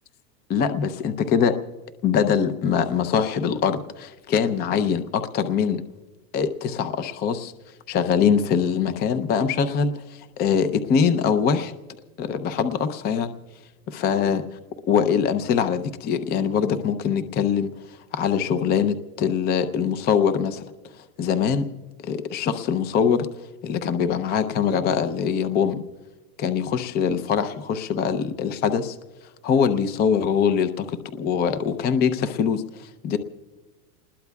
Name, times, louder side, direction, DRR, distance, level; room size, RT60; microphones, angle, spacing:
voice 1, 0.5-1.6 2.0-5.8 6.3-7.5 7.9-11.7 12.2-13.3 13.9-14.4 14.9-17.7 18.1-20.7 21.2-21.7 22.0-23.3 23.6-25.8 26.4-29.0 29.4-33.2, left 7 dB, 20° left, 11 dB, 0.6 m, -23 dB
29.0 x 20.5 x 2.3 m, 1.2 s
supercardioid pair, 135°, 48 cm